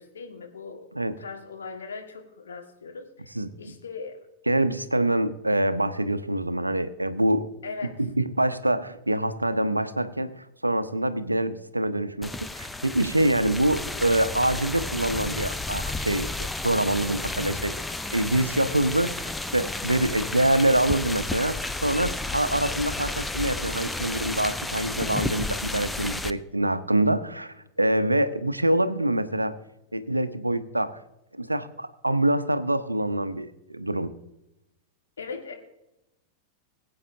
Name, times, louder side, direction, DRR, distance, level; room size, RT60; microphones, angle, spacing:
voice 1, 0.0-4.2 7.6-8.0 35.2-35.5, left 4 dB, 70° left, 3 dB, 1.8 m, -39 dB
voice 2, 3.3-3.7 4.5-7.5 8.0-17.7 18.1-29.5 29.9-31.0 31.3-34.1, right 1 dB, 85° right, 12 dB, 0.7 m, -25 dB
sound 1, 12.2-26.3, left 2 dB, 5° left, 0.5 m, -32 dB
21.5 x 8.5 x 2.7 m, 0.88 s
figure-of-eight pair, 90°, 0 cm